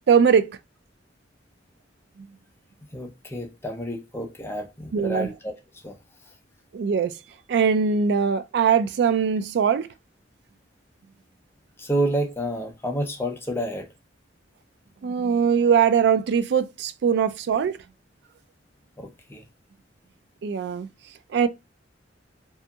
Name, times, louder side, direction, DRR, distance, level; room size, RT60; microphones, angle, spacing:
voice 1, 0.1-0.6 4.9-5.3 6.7-7.1 7.5-9.9 15.0-17.8 20.4-20.9 21.3-21.5, right 6 dB, 65° right, 0.3 m, -21 dB
voice 2, 2.9-5.5 5.8-6.0 11.8-13.9 19.0-19.4, right 1 dB, 15° left, 0.5 m, -29 dB
2.7 x 2.6 x 2.2 m
head